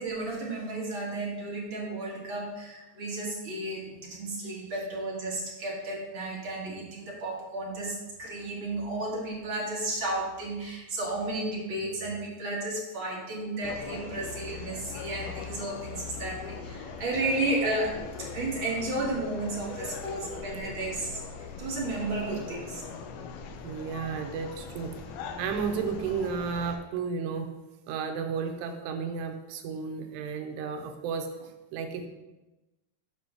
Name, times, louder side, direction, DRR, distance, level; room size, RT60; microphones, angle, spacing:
voice 1, 0.0-22.8, right 2 dB, 50° right, -3 dB, 1.5 m, -33 dB
sound 1, 13.6-26.8, left 5 dB, 80° left, 2.4 m, -41 dB
voice 2, 23.6-24.9 25.4-27.5 27.9-32.1, right 6 dB, 85° right, 6 dB, 2.9 m, -33 dB
7.8 x 5.2 x 6.0 m, 1.0 s
omnidirectional pair, 4.8 m